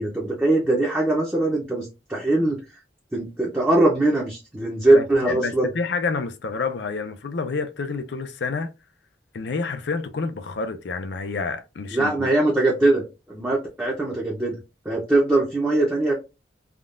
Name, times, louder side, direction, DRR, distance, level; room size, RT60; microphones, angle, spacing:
voice 1, 0.0-2.6 3.1-5.7 11.9-13.0 13.3-14.6 14.8-16.1, right 2 dB, 10° right, 0.6 m, -21 dB
voice 2, 4.9-8.7 9.3-12.3, left 4 dB, 70° left, 0.5 m, -28 dB
3.6 x 2.3 x 2.4 m
head